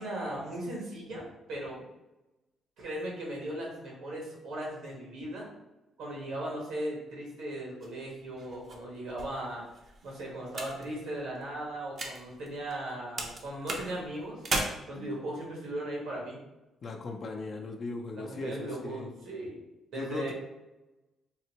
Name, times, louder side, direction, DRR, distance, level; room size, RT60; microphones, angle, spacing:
voice 1, 0.0-1.8 2.8-5.5 6.0-9.6 10.0-14.4 14.9-16.4 18.1-19.6 19.9-20.3, right 1 dB, 80° right, -3 dB, 1.2 m, -37 dB
sound 1, 7.8-12.9 13.2-14.6, right 3 dB, 50° right, 0.6 m, -38 dB
voice 2, 16.8-19.1 19.9-20.3, left 2 dB, 50° left, 3 dB, 0.5 m, -38 dB
3.8 x 2.1 x 2.9 m, 1.0 s
cardioid pair, 90°, 0 cm